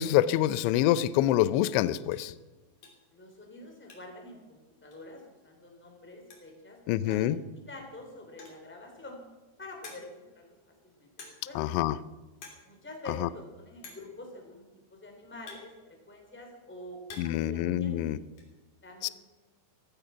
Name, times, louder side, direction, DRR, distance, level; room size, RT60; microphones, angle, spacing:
voice 1, 0.0-2.3 6.9-7.4 11.6-12.0 13.2-13.3 17.2-18.2 19.0-19.1, left 13 dB, 85° left, 16 dB, 2.6 m, -26 dB
sound 1, 2.1-2.3 2.8-3.1 3.4-4.3 4.5-4.6 4.9-5.0 6.0-6.1 6.3-6.6 7.1-7.4 8.2-8.7 9.3-9.4 9.8-10.3 11.2-11.6 11.9-12.1 12.3-12.7 12.9-13.0 13.8-14.2 15.0-16.3 16.7-17.5 17.7-18.5, left 4 dB, 45° left, 3.9 m, -50 dB
voice 2, 3.1-7.3 7.7-9.2 9.6-10.5 10.8-11.6 12.6-14.6 14.9-18.1 18.8-19.1, left 1 dB, 5° left, 2 dB, 2.5 m, -47 dB
15.5 x 15.0 x 5.8 m, 1.2 s
omnidirectional pair, 6.0 m